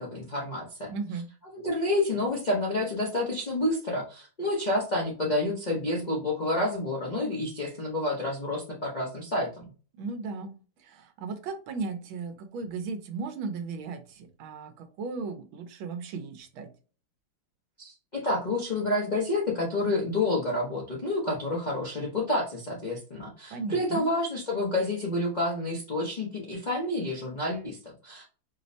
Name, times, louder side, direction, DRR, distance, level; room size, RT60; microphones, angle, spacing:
voice 1, 0.0-0.9 1.4-9.5 17.8-28.2, left 2 dB, 80° left, -3 dB, 0.4 m, -29 dB
voice 2, 0.9-1.3 10.0-10.5 10.8-16.7 23.5-24.1, right 4 dB, 80° right, 7 dB, 1.5 m, -36 dB
4.6 x 2.1 x 2.6 m, 0.37 s
omnidirectional pair, 2.2 m